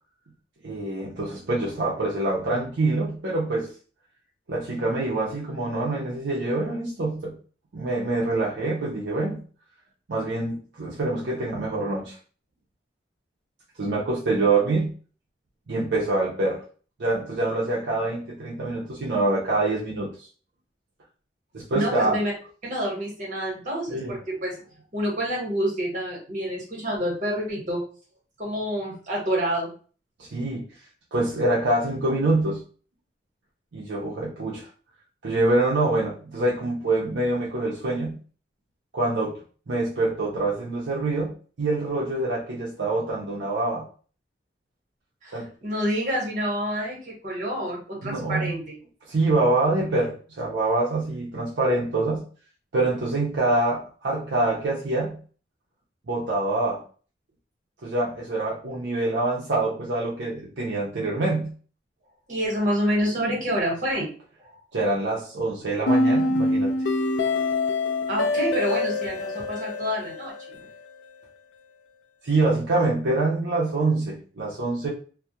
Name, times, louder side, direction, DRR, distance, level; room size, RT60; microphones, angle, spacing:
voice 1, 0.6-3.7 4.5-7.4 7.7-9.4 10.1-12.2 13.8-14.9 15.7-16.6 17.0-20.3 21.5-22.2 23.9-24.2 30.2-30.6 31.1-32.6 33.7-34.7 35.2-38.2 38.9-39.4 39.7-43.9 45.3-45.5 48.0-48.6 49.1-52.2 52.7-55.2 56.1-56.8 57.8-61.5 64.7-66.7 72.2-74.9, right 2 dB, 75° right, -4 dB, 0.6 m, -25 dB
voice 2, 21.7-22.3 22.6-24.5 24.9-27.8 28.4-29.7 45.2-48.8 62.3-64.1 68.1-70.3, equal, 45° right, -2 dB, 1.1 m, -28 dB
sound 1, 65.9-70.9, left 2 dB, 70° left, 0.3 m, -25 dB
2.3 x 2.1 x 2.7 m, 0.40 s
head